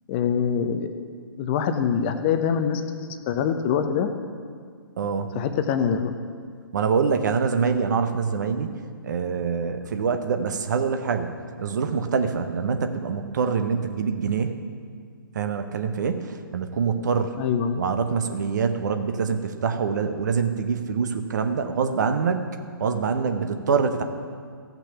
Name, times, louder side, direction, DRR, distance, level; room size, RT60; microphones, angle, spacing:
voice 1, 0.1-1.0 1.4-4.1 5.3-6.2 17.4-17.8, left 7 dB, 30° left, 8 dB, 0.7 m, -24 dB
voice 2, 5.0-5.3 6.7-8.7 9.0-11.3 11.6-14.6 15.3-17.3 17.8-22.4 22.8-24.0, right 5 dB, 50° right, 7 dB, 0.9 m, -25 dB
15.0 x 6.0 x 6.9 m, 2.1 s
figure-of-eight pair, 125°, 12 cm